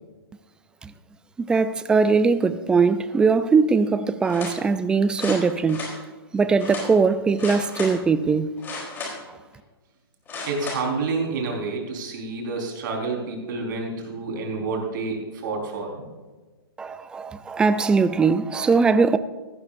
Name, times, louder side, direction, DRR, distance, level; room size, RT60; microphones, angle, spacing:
voice 1, 1.4-6.0 6.3-8.5 16.8-19.2, right 4 dB, 5° right, 0.4 m, -21 dB
sound 1, 4.2-4.6 5.1-5.9 6.6-6.9 7.4-7.9 8.6-9.3 10.3-10.8 11.4-11.5, left 3 dB, 15° left, 3.6 m, -34 dB
voice 2, 10.5-16.1, right 4 dB, 50° right, 4.5 m, -29 dB
17.0 x 14.0 x 2.6 m
hypercardioid pair, 155°, 13 cm